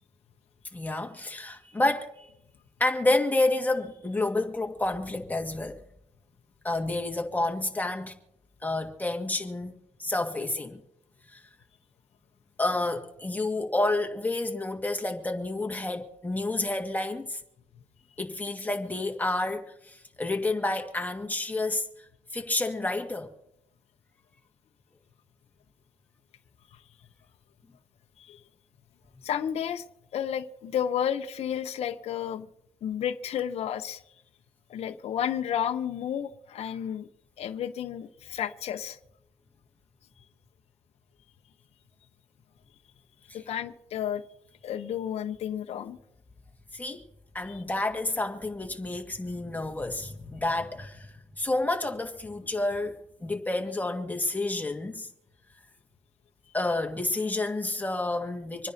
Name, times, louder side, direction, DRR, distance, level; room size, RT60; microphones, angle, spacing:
voice 1, 0.7-2.3 2.8-5.8 6.6-8.1 8.6-10.8 11.3-11.4 12.6-17.4 18.2-21.9 22.3-23.3 46.7-47.0 47.3-51.1 51.4-55.1 56.5-58.7, left 2 dB, 15° left, 1.9 m, -29 dB
voice 2, 29.2-29.8 30.1-32.5 32.8-34.0 34.7-37.1 37.4-39.0 43.3-44.2 44.6-46.0 47.5-47.6, left 9 dB, 65° left, 0.9 m, -31 dB
26.5 x 10.0 x 2.8 m
cardioid pair, 80°, 12 cm